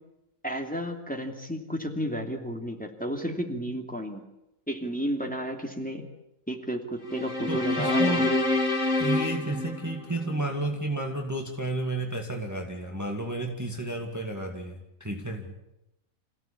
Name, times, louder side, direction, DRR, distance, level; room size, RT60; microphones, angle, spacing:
voice 1, 0.4-4.2 4.7-6.1 6.5-8.4, equal, 5° left, 2 dB, 2.7 m, -32 dB
sound 1, 7.1-10.5, left 2 dB, 60° left, 2.2 m, -27 dB
voice 2, 7.5-8.3 9.0-15.6, right 2 dB, 10° right, 1 dB, 2.2 m, -32 dB
28.0 x 16.5 x 8.7 m, 0.91 s
omnidirectional pair, 1.5 m